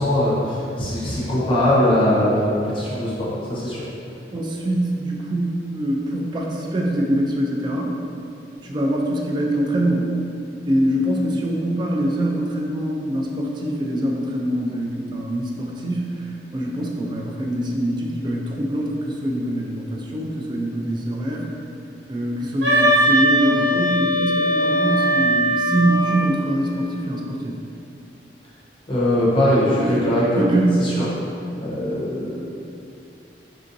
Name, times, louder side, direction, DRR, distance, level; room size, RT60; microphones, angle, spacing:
voice 1, 0.0-3.8 28.9-30.4 30.8-31.0 31.6-32.7, left 1 dB, 30° left, -8 dB, 0.8 m, -21 dB
voice 2, 4.3-8.0 8.6-10.1 10.7-16.3 16.5-21.5 22.1-27.6 29.6-30.1 30.4-31.0, right 1 dB, 25° right, -1 dB, 0.3 m, -24 dB
Wind instrument woodwind instrument, 22.6-26.4, right 1 dB, 90° right, 0.7 m, -20 dB
3.6 x 2.5 x 2.6 m, 2.6 s
head